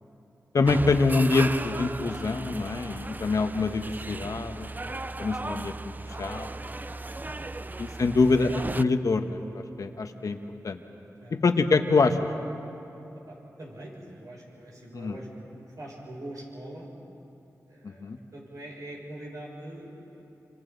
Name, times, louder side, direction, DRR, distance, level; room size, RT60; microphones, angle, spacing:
voice 1, 0.5-4.7 5.2-5.9 6.2-6.5 7.8-10.4 10.6-10.8 11.3-12.3 14.9-15.1 17.8-18.2, left 3 dB, 65° left, 6 dB, 1.2 m, -25 dB
sound 1, 0.6-8.8, right 2 dB, 30° right, 0.5 m, -36 dB
voice 2, 13.1-16.9 17.7-20.2, right 1 dB, 70° right, -4 dB, 6.8 m, -44 dB
28.0 x 26.0 x 4.0 m, 2.9 s
cardioid pair, 55°, 6 cm